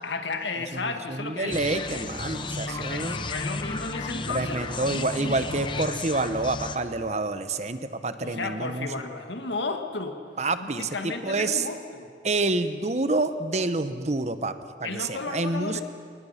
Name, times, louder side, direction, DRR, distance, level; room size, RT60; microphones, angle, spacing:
voice 1, 0.0-1.6 2.6-5.0 8.2-10.2 10.6-12.1 14.8-15.8, left 3 dB, 90° left, 5 dB, 1.8 m, -33 dB
voice 2, 0.7-3.3 4.3-8.9 10.4-11.6 12.2-14.5 14.8-15.8, right 2 dB, 40° right, 11 dB, 0.9 m, -28 dB
sound 1, 1.5-6.8, left 3 dB, 25° left, 0.9 m, -33 dB
27.5 x 19.5 x 5.8 m, 2.2 s
head